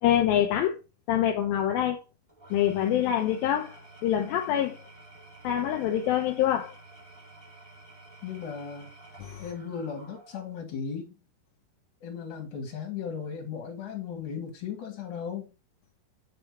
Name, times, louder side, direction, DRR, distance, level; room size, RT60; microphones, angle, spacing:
voice 1, 0.0-0.8 1.1-2.0 2.5-4.8 5.4-6.7 9.2-9.4, left 11 dB, 80° left, 2.3 m, -25 dB
Engine / Tools, 2.3-10.6, right 2 dB, 10° right, 1.6 m, -51 dB
voice 2, 8.2-8.9 9.4-11.2 12.0-15.5, left 6 dB, 55° left, 3.2 m, -36 dB
7.9 x 3.4 x 4.6 m
omnidirectional pair, 4.6 m